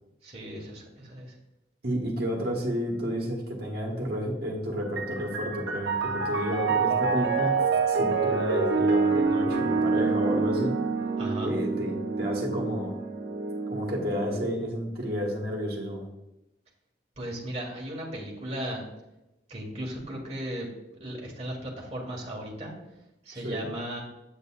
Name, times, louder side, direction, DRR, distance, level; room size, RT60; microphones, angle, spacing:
voice 1, 0.2-1.3 11.2-11.5 17.2-18.8 19.5-20.7 21.0-22.7 23.2-24.0, right 1 dB, 35° right, -2 dB, 1.6 m, -36 dB
voice 2, 1.8-7.5 7.8-10.8 11.4-13.0 13.7-16.1 23.3-23.7, equal, 55° right, -1 dB, 1.5 m, -31 dB
Piano, 4.8-14.4, right 4 dB, 85° right, 0.9 m, -27 dB
8.1 x 6.6 x 2.5 m, 0.94 s
head